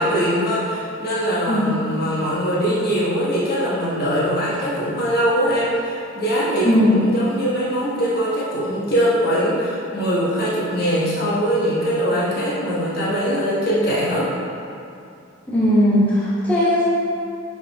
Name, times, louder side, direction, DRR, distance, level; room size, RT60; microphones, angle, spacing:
voice 1, 0.0-14.3, equal, 55° left, -7 dB, 1.2 m, -22 dB
voice 2, 6.6-7.0 15.5-16.9, left 1 dB, 10° left, -10 dB, 1.3 m, -17 dB
6.4 x 3.7 x 4.1 m, 2.6 s
head